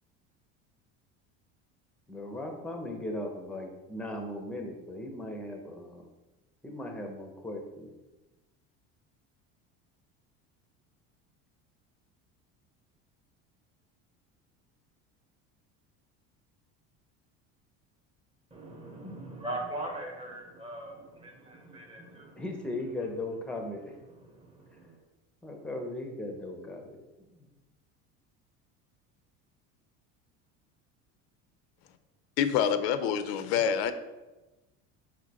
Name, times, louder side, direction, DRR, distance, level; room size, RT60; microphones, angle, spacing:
voice 1, 2.1-6.1 6.6-7.9 22.4-23.9 25.4-27.4, left 1 dB, 5° left, 0.6 m, -38 dB
voice 2, 18.5-22.4 24.1-25.0, right 1 dB, 20° right, 1.0 m, -41 dB
voice 3, 32.4-33.9, left 8 dB, 90° left, 0.5 m, -26 dB
5.0 x 3.7 x 2.9 m
cardioid pair, 130°, 31 cm